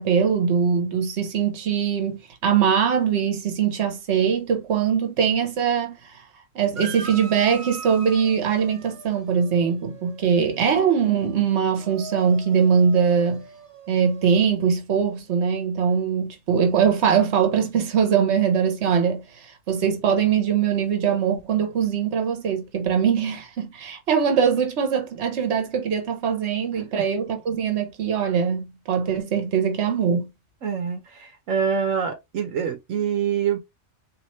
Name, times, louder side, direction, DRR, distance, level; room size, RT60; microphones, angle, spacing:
voice 1, 0.0-6.0 6.5-13.4 13.9-30.3, right 7 dB, 60° right, 1.3 m, -22 dB
sound 1, 6.8-14.5, right 4 dB, 30° right, 0.7 m, -41 dB
voice 2, 30.6-33.6, right 7 dB, 80° right, 1.2 m, -25 dB
4.2 x 3.0 x 3.1 m
omnidirectional pair, 1.3 m